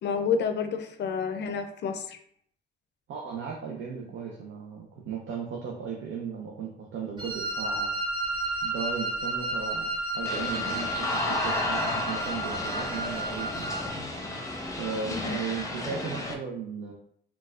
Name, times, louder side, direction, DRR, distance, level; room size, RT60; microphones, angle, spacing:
voice 1, 0.0-2.2 15.1-15.4, left 6 dB, 60° left, 7 dB, 0.4 m, -29 dB
voice 2, 3.1-7.9 8.6-13.8 14.8-16.9, right 6 dB, 75° right, -1 dB, 0.6 m, -36 dB
Wind instrument woodwind instrument, 7.2-13.9, right 1 dB, 25° right, 0.7 m, -32 dB
sound 1, 10.3-16.3, left 2 dB, 15° left, 0.6 m, -32 dB
4.0 x 2.3 x 2.4 m, 0.64 s
cardioid pair, 90°, 20 cm